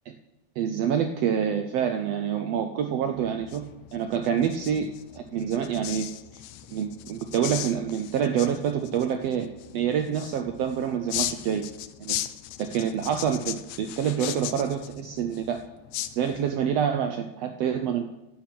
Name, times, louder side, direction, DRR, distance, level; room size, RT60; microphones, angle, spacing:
voice 1, 0.6-3.6 3.9-4.9 5.1-6.1 6.7-11.6 12.0-12.2 12.6-15.6 16.1-18.0, right 8 dB, 80° right, 6 dB, 1.4 m, -27 dB
sound 1, 3.1-16.7, left 13 dB, 80° left, 1.9 m, -38 dB
11.5 x 8.3 x 5.9 m, 0.93 s
omnidirectional pair, 3.6 m